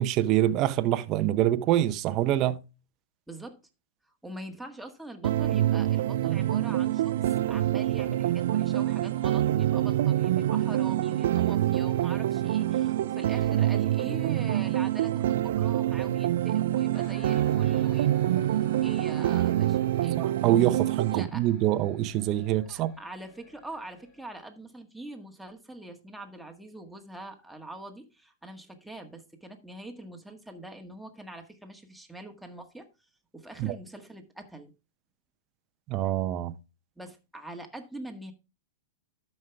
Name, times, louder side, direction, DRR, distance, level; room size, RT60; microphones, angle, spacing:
voice 1, 0.0-2.6 20.2-22.9 33.6-33.8 35.9-36.5, right 13 dB, 40° right, 0.7 m, -25 dB
voice 2, 3.3-3.6 4.1-7.1 7.4-20.2 21.1-21.4 22.7-32.9 33.3-34.7 37.0-38.3, right 1 dB, ahead, 1.7 m, -44 dB
sound 1, 5.2-21.2, right 13 dB, 70° right, 0.4 m, -26 dB
sound 2, 16.9-24.4, left 3 dB, 45° left, 2.5 m, -53 dB
12.5 x 5.5 x 3.5 m
hypercardioid pair, 120°, 0 cm